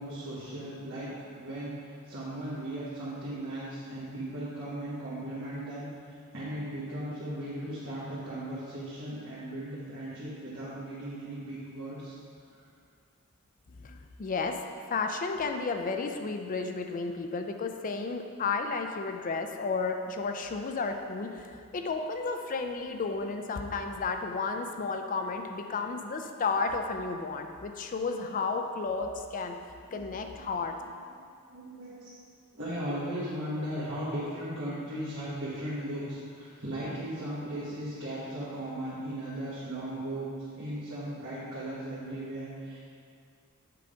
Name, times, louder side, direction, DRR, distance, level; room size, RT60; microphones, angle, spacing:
voice 1, 0.0-5.9 6.3-12.2 29.9-30.5 30.8-32.2 32.5-42.8, right 1 dB, 60° right, -11 dB, 1.5 m, -37 dB
voice 2, 13.8-14.6 14.9-29.6 29.9-30.7, left 4 dB, 40° left, 5 dB, 0.4 m, -32 dB
7.6 x 3.5 x 5.0 m, 2.3 s
head